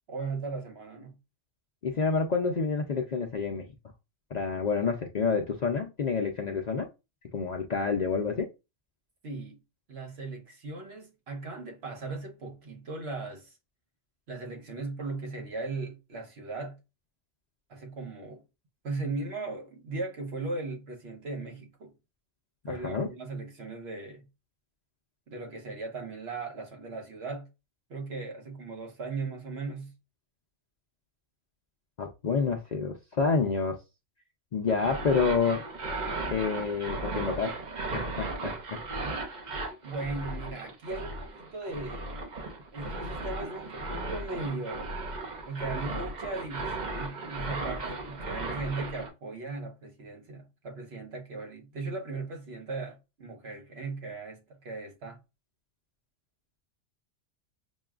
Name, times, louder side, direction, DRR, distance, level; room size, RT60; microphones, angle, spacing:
voice 1, 0.1-1.2 9.2-9.6 9.9-13.5 14.3-16.8 17.7-18.4 18.8-21.9 22.7-24.3 25.3-27.5 27.9-29.9 39.8-42.1 42.7-45.0 45.5-55.2, right 3 dB, 65° right, 1.2 m, -38 dB
voice 2, 1.8-3.7 4.3-6.9 7.3-8.5 22.6-23.1 32.0-33.8 34.5-35.6 36.3-38.8, left 5 dB, 50° left, 0.5 m, -28 dB
sound 1, 34.7-49.1, right 2 dB, 45° right, 0.8 m, -36 dB
6.1 x 2.2 x 2.3 m
omnidirectional pair, 1.2 m